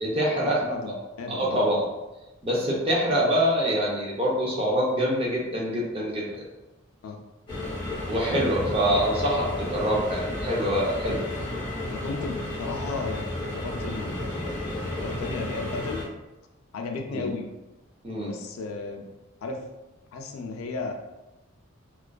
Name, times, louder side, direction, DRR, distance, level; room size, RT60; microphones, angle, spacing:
voice 1, 0.0-0.6 1.3-1.9 2.4-6.3 8.1-11.2 17.1-17.3 18.0-18.3, equal, 25° right, -3 dB, 0.5 m, -25 dB
voice 2, 0.6-1.8 7.0-7.2 11.9-16.0 16.7-17.5 18.3-19.1 19.4-19.6 20.1-20.9, left 3 dB, 85° left, 3 dB, 0.4 m, -35 dB
sound 1, 7.5-16.0, left 1 dB, 20° left, 0.7 m, -32 dB
2.4 x 2.4 x 2.2 m, 1.0 s
head